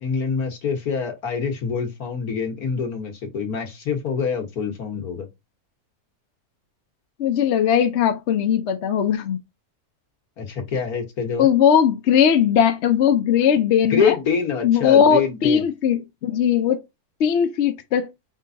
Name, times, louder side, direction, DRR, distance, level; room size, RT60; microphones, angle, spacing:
voice 1, 0.0-5.3 10.4-11.5 13.9-15.7, left 6 dB, 75° left, 1.8 m, -25 dB
voice 2, 7.2-9.4 11.4-14.2 14.6-16.8 17.2-18.1, left 8 dB, 60° left, 0.8 m, -19 dB
5.2 x 3.8 x 2.7 m
omnidirectional pair, 1.6 m